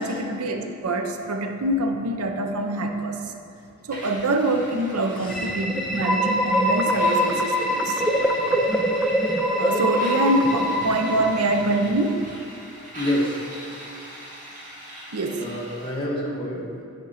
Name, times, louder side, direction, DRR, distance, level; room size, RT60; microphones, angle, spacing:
voice 1, 0.0-3.2 3.9-8.0 9.6-12.3 15.1-15.4, right 1 dB, 90° right, 5 dB, 0.7 m, -25 dB
sound 1, 3.9-15.9, equal, 35° right, 1.8 m, -41 dB
voice 2, 5.1-5.5 12.9-13.4 15.4-16.7, left 1 dB, 20° left, -5 dB, 1.3 m, -28 dB
sound 2, 5.3-12.0, equal, ahead, 0.4 m, -24 dB
10.5 x 5.2 x 4.2 m, 2.6 s
head